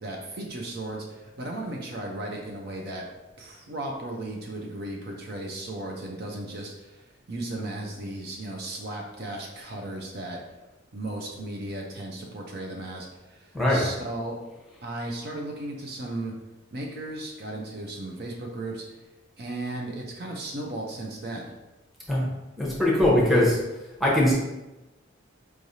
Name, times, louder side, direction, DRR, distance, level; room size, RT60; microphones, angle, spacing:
voice 1, 0.0-3.0 3.4-10.4 10.9-14.4 14.8-16.3 16.7-18.8 19.4-21.5, right 2 dB, 50° right, -1 dB, 0.6 m, -35 dB
voice 2, 13.5-13.9 22.1-22.2 22.6-23.6 24.0-24.3, left 1 dB, ahead, -5 dB, 0.9 m, -21 dB
4.7 x 3.2 x 2.7 m, 1.0 s
head